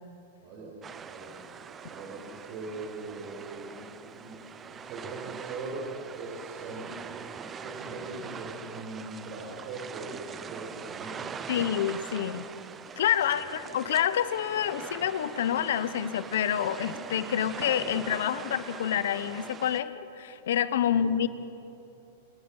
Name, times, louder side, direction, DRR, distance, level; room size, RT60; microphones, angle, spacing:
voice 1, 0.4-1.5 1.8-12.0 13.2-13.5 20.8-21.3, right 3 dB, 50° right, -4 dB, 5.2 m, -41 dB
sound 1, 0.8-19.8, right 6 dB, 20° right, 0.8 m, -42 dB
voice 2, 11.5-12.4 13.0-21.3, left 9 dB, 75° left, 14 dB, 1.1 m, -28 dB
27.5 x 20.5 x 5.7 m, 2.9 s
hypercardioid pair, 135°, 0 cm